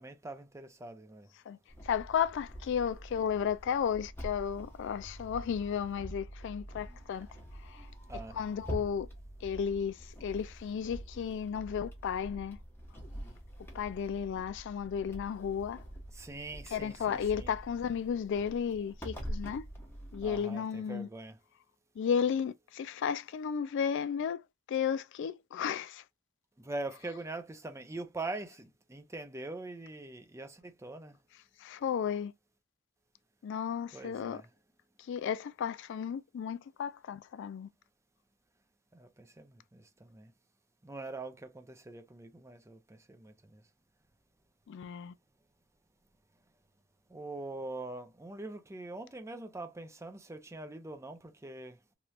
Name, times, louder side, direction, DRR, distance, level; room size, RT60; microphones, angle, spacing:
voice 1, 0.0-1.3 8.1-8.4 16.1-17.5 20.2-21.4 26.6-31.2 33.9-34.5 38.9-40.3 40.8-43.6 47.1-51.9, right 2 dB, 15° right, 0.5 m, -43 dB
sound 1, 1.7-20.4, equal, 10° left, 0.9 m, -46 dB
voice 2, 1.8-7.3 7.6-7.9 8.3-9.1 9.4-12.6 13.7-15.8 16.7-19.6 20.1-21.1 22.0-24.4 24.7-26.0 31.6-32.3 33.4-34.4 35.1-37.7 44.7-45.1, left 7 dB, 60° left, 0.3 m, -33 dB
3.1 x 2.9 x 2.3 m
head